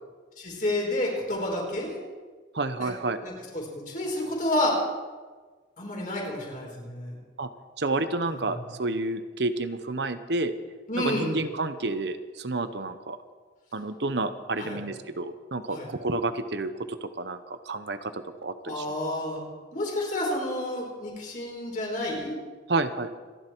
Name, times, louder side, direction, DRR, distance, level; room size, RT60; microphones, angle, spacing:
voice 1, 0.4-2.0 2.8-2.9 3.2-4.8 5.8-7.1 8.2-8.5 10.9-11.4 14.6-14.8 15.7-15.9 18.6-19.4 19.7-22.4, left 1 dB, 45° left, -2 dB, 4.9 m, -30 dB
voice 2, 2.5-3.2 7.4-7.5 7.8-10.5 11.0-13.2 13.7-18.8 22.7-23.1, right 2 dB, 65° right, 10 dB, 0.9 m, -30 dB
26.5 x 11.0 x 4.6 m, 1.4 s
head